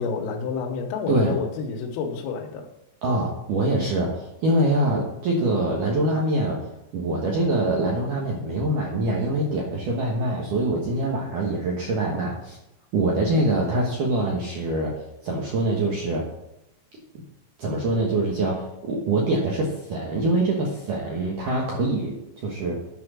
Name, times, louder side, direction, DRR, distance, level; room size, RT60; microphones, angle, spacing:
voice 1, 0.0-2.7, left 5 dB, 85° left, 0 dB, 3.8 m, -29 dB
voice 2, 3.0-6.7 6.9-12.6 12.9-16.3 17.6-22.8, right 2 dB, 75° right, -2 dB, 1.9 m, -24 dB
10.5 x 5.8 x 6.2 m, 0.88 s
omnidirectional pair, 5.9 m